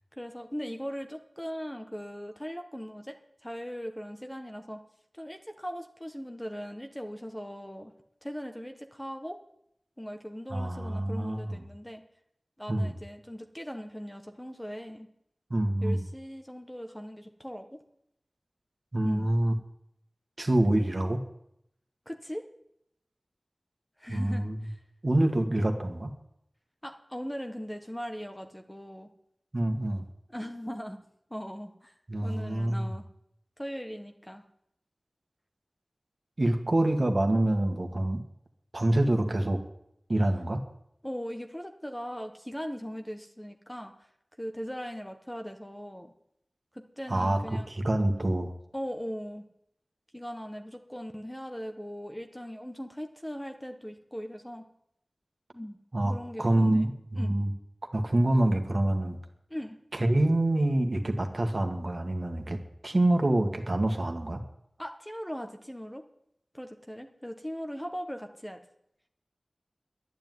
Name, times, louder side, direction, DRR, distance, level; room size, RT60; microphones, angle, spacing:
voice 1, 0.2-3.2 3.4-4.8 5.1-7.9 8.2-9.4 10.0-12.0 12.6-15.1 15.8-17.8 19.0-19.3 22.0-22.5 24.0-24.8 26.8-29.1 30.3-31.0 31.3-31.9 32.2-33.1 33.6-34.4 41.0-43.9 44.4-46.1 46.7-47.7 48.7-49.4 50.1-54.7 55.5-55.8 56.1-56.9 57.2-57.4 59.5-59.8 64.8-66.0 66.5-68.6, equal, 10° left, 5 dB, 1.4 m, -39 dB
voice 2, 10.5-11.6 12.7-12.9 15.5-16.0 18.9-19.5 20.4-21.2 24.1-24.6 25.0-26.1 29.5-30.1 32.1-32.9 36.4-38.2 38.7-39.6 40.1-40.6 47.1-48.5 55.9-57.5 57.9-59.2 59.9-64.4, right 1 dB, 50° right, 4 dB, 2.0 m, -26 dB
11.5 x 10.5 x 9.5 m, 0.76 s
wide cardioid pair, 60°, 0 cm